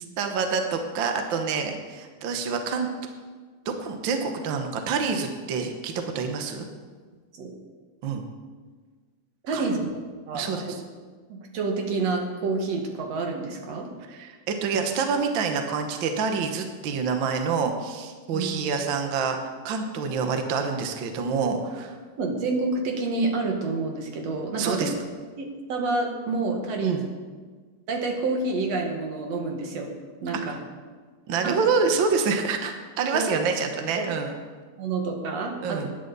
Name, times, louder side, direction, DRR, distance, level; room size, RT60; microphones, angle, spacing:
voice 1, 0.2-2.9 3.6-6.7 8.0-8.2 9.5-9.7 10.3-10.8 14.1-19.4 19.6-21.9 24.6-24.9 26.8-27.0 31.3-34.3 35.6-35.9, right 5 dB, 75° right, 5 dB, 1.1 m, -27 dB
voice 2, 9.4-9.9 10.3-10.6 11.3-13.9 18.3-18.5 22.2-24.9 25.4-27.1 27.9-29.9 30.2-30.6 31.4-31.6 33.1-33.3 34.0-34.1 34.8-35.8, right 3 dB, 55° right, 2 dB, 2.5 m, -28 dB
19.0 x 10.5 x 4.1 m, 1.5 s
omnidirectional pair, 3.9 m